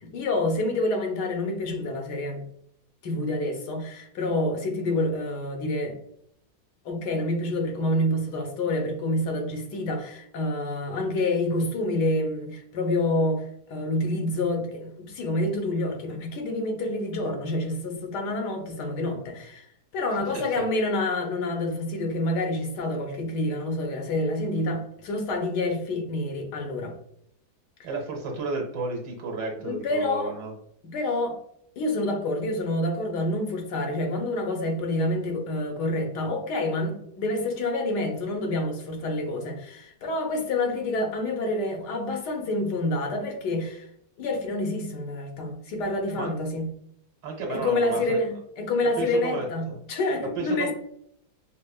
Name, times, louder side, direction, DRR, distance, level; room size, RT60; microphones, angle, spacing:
voice 1, 0.0-2.4 3.0-6.0 6.8-19.7 19.9-26.9 29.6-30.3 30.9-31.4 31.8-43.8 44.2-46.7 47.5-50.7, left 1 dB, 90° left, 2 dB, 1.4 m, -28 dB
voice 2, 20.3-20.6 27.8-30.5 46.1-46.3 47.2-48.2 49.0-49.8 50.3-50.7, right 3 dB, 75° right, 0 dB, 1.5 m, -33 dB
5.4 x 2.1 x 2.2 m, 0.71 s
omnidirectional pair, 1.8 m